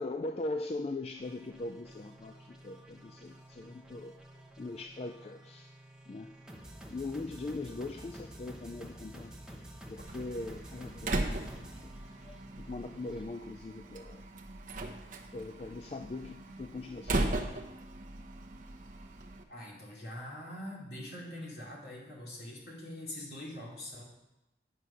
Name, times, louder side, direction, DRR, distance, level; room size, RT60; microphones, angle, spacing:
voice 1, 0.0-4.2 4.6-5.7 6.1-6.3 6.9-9.6 9.9-11.9 12.2-14.2 15.3-17.4, left 2 dB, 35° left, 6 dB, 0.3 m, -41 dB
sound 1, 1.2-13.2, right 1 dB, 5° right, 0.9 m, -50 dB
Slam, 10.0-19.4, right 2 dB, 45° right, 0.8 m, -38 dB
voice 2, 19.5-24.0, left 1 dB, 60° left, -4 dB, 2.7 m, -43 dB
9.2 x 6.3 x 5.6 m, 0.96 s
head